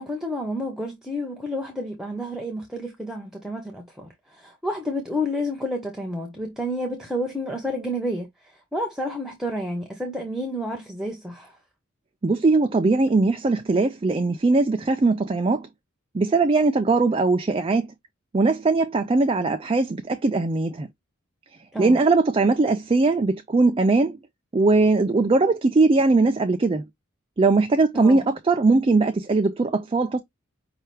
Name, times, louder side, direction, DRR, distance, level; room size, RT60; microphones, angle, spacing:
voice 1, 0.0-8.3 8.5-11.6 21.7-22.0 27.9-28.2, equal, ahead, 0.8 m, -30 dB
voice 2, 12.2-15.7 16.1-17.9 18.3-20.9 21.8-24.2 24.5-26.9 27.4-30.2, right 3 dB, 25° right, 0.4 m, -20 dB
5.5 x 2.4 x 3.2 m
head